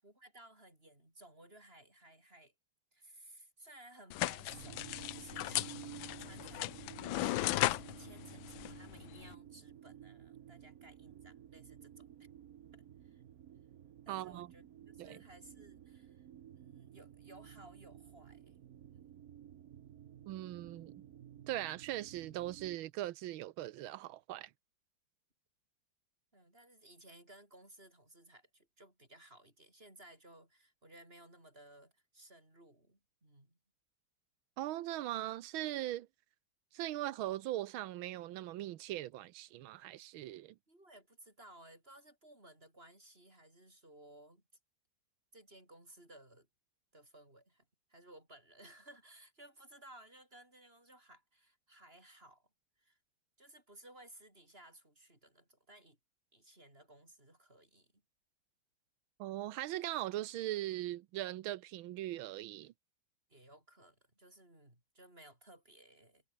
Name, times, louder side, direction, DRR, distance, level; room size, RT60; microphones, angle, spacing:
voice 1, 0.0-2.5 2.9-4.8 5.1-5.9 6.2-6.8 7.1-12.3 12.7-13.2 14.0-16.3 16.6-18.6 18.9-19.0 26.3-33.6 40.7-44.4 45.3-46.5 46.9-52.5 52.8-53.0 53.4-56.0 56.3-58.0 63.3-66.2, right 1 dB, 25° right, 7.5 m, -59 dB
sound 1, 4.1-9.3, left 17 dB, 75° left, 1.3 m, -37 dB
sound 2, 4.5-22.8, right 10 dB, 55° right, 1.2 m, -54 dB
voice 2, 14.1-14.5 15.0-15.2 20.3-21.0 21.5-24.5 34.6-36.1 36.7-40.5 59.2-62.7, right 14 dB, 75° right, 1.6 m, -40 dB
omnidirectional pair, 2.3 m